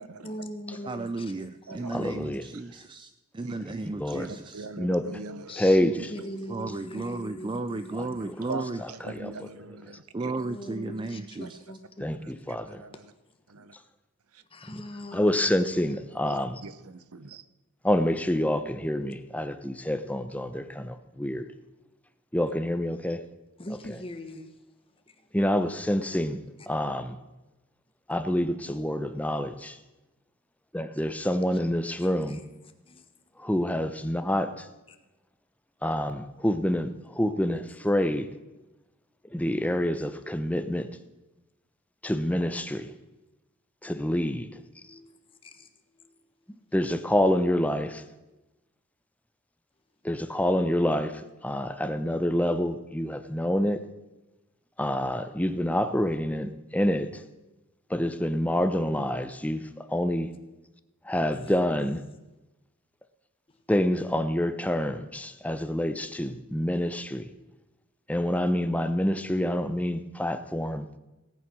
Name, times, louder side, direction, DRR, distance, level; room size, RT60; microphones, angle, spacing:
voice 1, 0.2-2.1 5.5-8.7 9.1-9.2 10.4-12.1 14.5-16.0 23.6-24.5 25.1-25.3 31.0-31.2 31.5-31.7 32.0-32.4 32.9-33.1 34.9-35.0 37.6-37.7 44.8-46.2 61.4-61.6 63.5-63.6, left 1 dB, 25° left, 1.3 m, -42 dB
voice 2, 0.9-4.7 6.5-8.8 10.1-11.6, right 3 dB, 20° right, 0.4 m, -34 dB
voice 3, 1.9-2.4 4.0-4.3 4.8-5.1 5.6-5.9 8.3-8.4 9.0-9.5 12.0-12.8 15.1-16.6 17.8-21.5 22.3-23.2 25.3-26.4 26.7-27.2 28.1-29.8 30.7-32.4 33.4-34.7 35.8-38.3 39.3-40.9 42.0-42.9 43.8-44.5 46.7-48.0 50.0-53.8 54.8-57.2 57.9-60.3 61.0-62.0 63.7-67.3 68.1-70.9, left 1 dB, 5° left, 0.7 m, -27 dB
voice 4, 4.2-5.6 5.9-6.5 8.5-10.3 11.4-11.5 12.2-12.3 12.7-13.0 13.5-13.7 16.2-17.4, right 3 dB, 80° right, 0.8 m, -42 dB
17.5 x 9.2 x 6.1 m
head